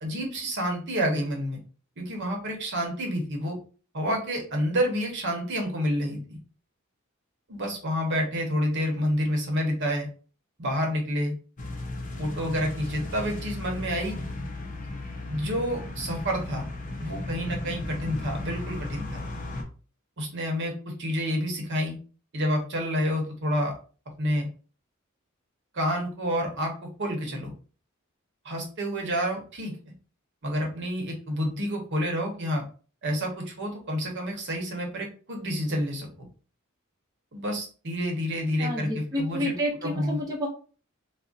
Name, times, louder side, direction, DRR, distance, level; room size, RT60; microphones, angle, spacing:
voice 1, 0.0-1.6 2.0-3.6 3.9-6.4 7.5-10.1 10.6-11.3 12.2-14.2 15.3-16.6 17.0-19.2 20.2-22.0 22.3-23.7 24.2-24.5 25.7-26.7 27.0-27.5 28.4-29.8 30.4-32.6 33.0-36.3 37.3-39.5 39.8-40.2, equal, 60° right, 2 dB, 0.8 m, -29 dB
sound 1, 11.6-19.6, left 2 dB, 40° left, 0.6 m, -35 dB
voice 2, 38.6-40.5, equal, 15° right, -2 dB, 0.5 m, -30 dB
2.4 x 2.0 x 3.8 m, 0.38 s
head